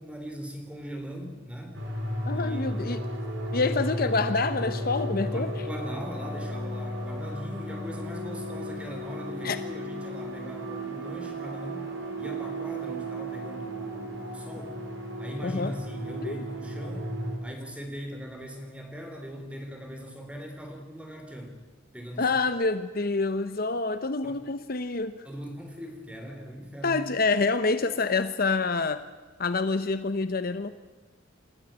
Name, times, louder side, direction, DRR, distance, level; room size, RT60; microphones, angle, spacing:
voice 1, 0.0-1.8 2.3-2.7 5.3-11.9 12.2-14.8 15.2-21.6 21.9-22.4 24.2-24.4 25.2-27.0, equal, 5° right, 3 dB, 3.5 m, -40 dB
sound 1, 1.7-17.4, equal, 65° right, 4.8 m, -34 dB
voice 2, 2.3-3.0 3.5-5.5 9.4-9.6 15.4-15.7 16.2-16.4 22.2-25.3 26.8-29.0 29.4-30.7, left 3 dB, 50° left, 11 dB, 0.8 m, -27 dB
28.0 x 13.5 x 8.9 m, 1.3 s
head